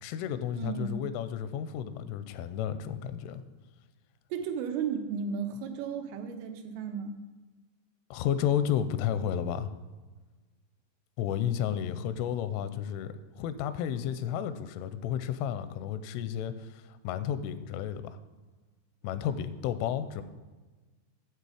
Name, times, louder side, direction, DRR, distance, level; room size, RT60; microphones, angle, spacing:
voice 1, 0.0-3.4 8.1-9.7 11.2-18.2 19.0-20.2, left 9 dB, 85° left, 12 dB, 3.0 m, -32 dB
voice 2, 0.6-1.0 4.3-7.2, right 6 dB, 90° right, 5 dB, 3.5 m, -34 dB
9.4 x 7.5 x 4.9 m, 1.2 s
omnidirectional pair, 5.6 m